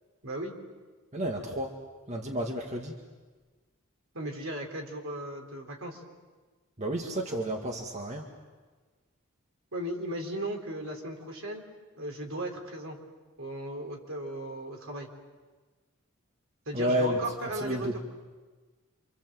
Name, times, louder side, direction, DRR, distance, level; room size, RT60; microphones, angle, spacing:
voice 1, 0.2-0.5 4.1-6.0 9.7-11.6 12.0-13.0 13.4-15.1 16.7-18.0, right 1 dB, 65° right, 2 dB, 3.9 m, -36 dB
voice 2, 1.1-1.7 2.1-3.0 6.8-8.3 16.7-17.2 17.5-18.0, equal, 30° right, 1 dB, 1.9 m, -31 dB
28.0 x 26.5 x 7.7 m, 1.3 s
head